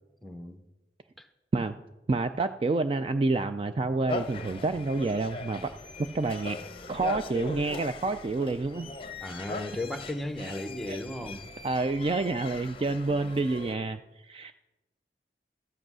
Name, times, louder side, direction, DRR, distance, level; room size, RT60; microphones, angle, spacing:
voice 1, 0.2-0.6 1.2-1.3 9.2-11.5, left 1 dB, ahead, 8 dB, 0.8 m, -36 dB
voice 2, 2.1-5.7 6.1-6.6 6.9-8.9 10.9-11.0 11.6-14.5, right 3 dB, 30° right, 9 dB, 0.3 m, -28 dB
sound 1, 4.1-13.7, left 3 dB, 30° left, 0.7 m, -40 dB
13.5 x 7.7 x 6.1 m, 1.0 s
head